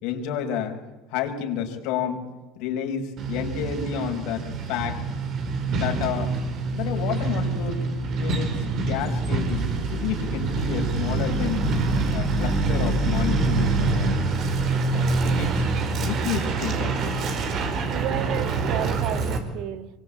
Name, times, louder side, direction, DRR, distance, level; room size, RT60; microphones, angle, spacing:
voice 1, 0.0-0.7 1.1-2.2 2.6-5.0 5.7-6.3 6.7-7.8 8.2-11.7 12.1-14.2 14.9-15.7 16.0-17.3, left 8 dB, 70° left, 4 dB, 5.7 m, -30 dB
Truck, 3.2-19.4, right 3 dB, 50° right, 4.9 m, -25 dB
voice 2, 17.9-19.9, right 12 dB, 65° right, 11 dB, 1.8 m, -32 dB
25.0 x 23.5 x 8.8 m, 1.1 s
supercardioid pair, 95°, 0 cm